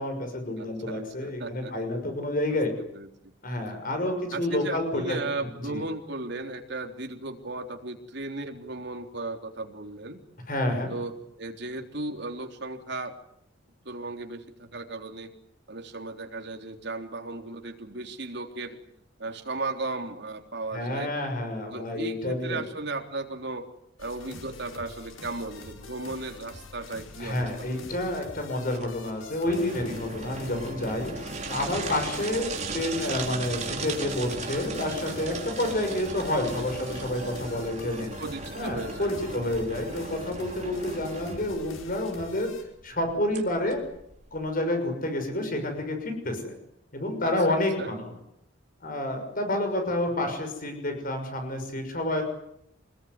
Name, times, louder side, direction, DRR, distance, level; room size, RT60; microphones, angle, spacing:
voice 1, 0.0-2.7 3.4-5.2 5.7-5.8 10.5-10.9 20.7-22.6 27.2-38.1 38.5-42.5 42.8-43.8 44.3-46.5 46.9-48.1 48.8-52.2, left 1 dB, 45° left, 5 dB, 6.3 m, -29 dB
voice 2, 0.6-1.7 2.9-3.3 4.3-10.2 10.9-13.1 13.9-15.3 15.7-18.8 19.2-21.1 21.7-23.7 24.0-28.2 38.2-39.4 47.2-48.0, right 2 dB, 60° right, 4 dB, 3.6 m, -36 dB
sound 1, 24.0-42.6, left 3 dB, 90° left, 5.4 m, -46 dB
sound 2, 27.5-44.5, right 3 dB, 35° right, 4.2 m, -37 dB
26.0 x 21.0 x 9.7 m, 0.76 s
head